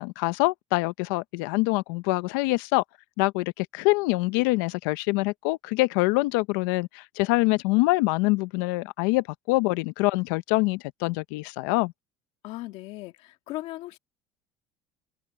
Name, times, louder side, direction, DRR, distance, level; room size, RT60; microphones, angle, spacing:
voice 1, 0.0-2.8 3.2-11.9, left 22 dB, 90° left, 0.7 m, -25 dB
voice 2, 12.4-14.0, left 17 dB, 70° left, 1.9 m, -37 dB
cardioid pair, 120°, 10 cm